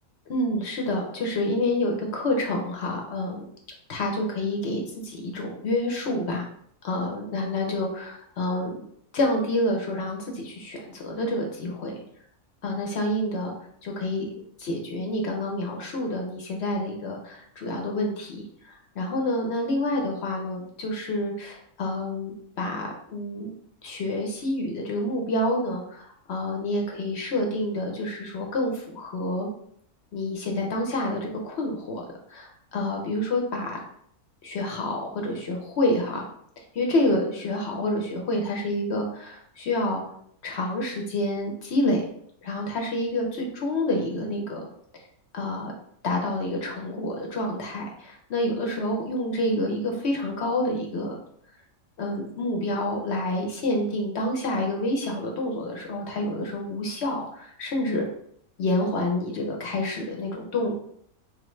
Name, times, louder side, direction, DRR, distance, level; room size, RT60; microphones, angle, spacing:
voice 1, 0.3-3.4 3.9-6.4 6.8-8.8 9.1-11.9 12.6-13.5 13.8-14.2 14.6-23.5 23.8-29.5 30.1-32.0 32.3-33.8 34.4-36.2 36.7-40.0 40.4-42.1 42.4-44.6 45.3-45.7 46.0-51.2 52.0-58.1 58.6-60.7, left 1 dB, 55° left, 1 dB, 0.8 m, -28 dB
4.4 x 2.4 x 3.1 m, 0.67 s
omnidirectional pair, 1.5 m